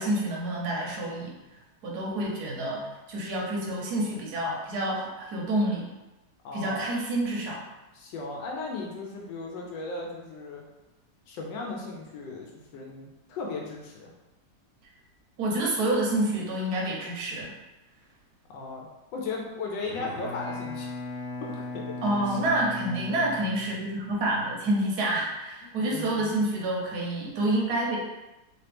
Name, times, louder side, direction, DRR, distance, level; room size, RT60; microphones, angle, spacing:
voice 1, 0.0-1.3 1.8-5.9 6.5-7.7 15.4-17.5 22.0-28.0, right 1 dB, 65° right, -3 dB, 1.3 m, -28 dB
voice 2, 6.4-6.9 7.9-10.6 11.3-14.1 18.5-18.9 19.1-20.9 21.4-22.4 25.6-26.4, left 3 dB, 85° left, -1 dB, 1.3 m, -36 dB
Bowed string instrument, 19.8-24.1, left 2 dB, 60° left, 1.1 m, -37 dB
3.2 x 3.1 x 3.3 m, 1.0 s
omnidirectional pair, 1.9 m